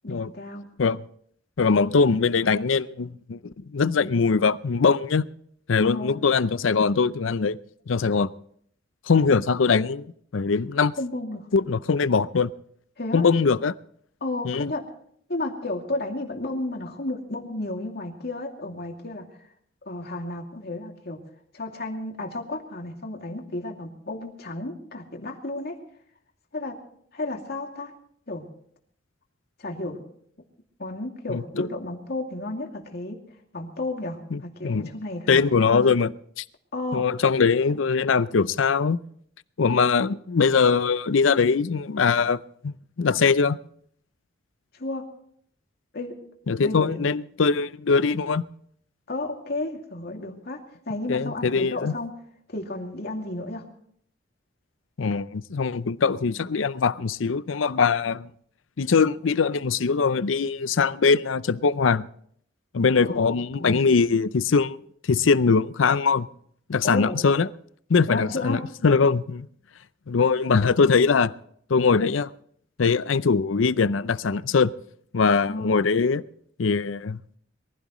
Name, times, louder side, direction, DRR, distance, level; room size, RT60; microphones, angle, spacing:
voice 1, 0.0-0.7 5.8-6.2 11.0-11.5 13.0-13.2 14.2-14.8 15.3-19.4 19.9-21.2 21.5-25.8 26.5-26.8 27.1-27.9 28.3-28.4 29.6-30.0 30.8-33.2 33.5-35.9 36.7-37.0 37.7-37.8 44.7-45.1 45.9-46.2 46.6-47.1 49.1-52.1 52.5-53.7 63.0-63.2 63.6-63.8 66.8-67.2 68.1-68.6 75.5-75.8, left 2 dB, 55° left, 2.5 m, -32 dB
voice 2, 1.6-5.2 5.7-7.6 7.9-8.3 9.1-10.0 10.3-10.9 11.5-12.5 13.1-13.8 14.4-14.7 31.3-31.7 34.3-34.9 35.3-36.1 36.4-36.5 36.9-39.0 39.6-42.7 43.0-43.6 46.5-48.4 51.1-51.9 55.0-58.3 58.8-62.0 62.7-66.3 66.7-67.5 67.9-69.5 70.1-71.3 71.7-72.3 72.8-74.7 75.1-76.2 76.6-77.2, left 5 dB, 90° left, 0.6 m, -22 dB
23.0 x 15.5 x 3.1 m
head